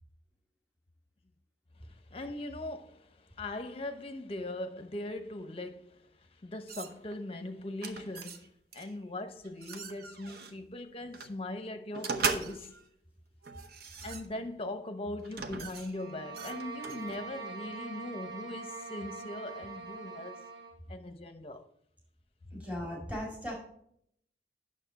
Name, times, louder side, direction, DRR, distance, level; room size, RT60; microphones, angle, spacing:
voice 1, 1.8-6.1 6.4-12.7 14.0-20.4 20.9-21.6, left 1 dB, 35° left, 0.7 m, -40 dB
sound 1, 6.7-7.2 7.8-8.5 8.7-8.9 9.4-10.5 11.1-11.3 11.9-12.9 13.4-14.6 15.2-17.3, right 5 dB, 60° right, 0.8 m, -38 dB
sound 2, 15.9-20.8, right 4 dB, 85° right, 1.3 m, -43 dB
voice 2, 22.5-23.5, equal, 10° right, 2.3 m, -37 dB
9.1 x 6.5 x 4.0 m
head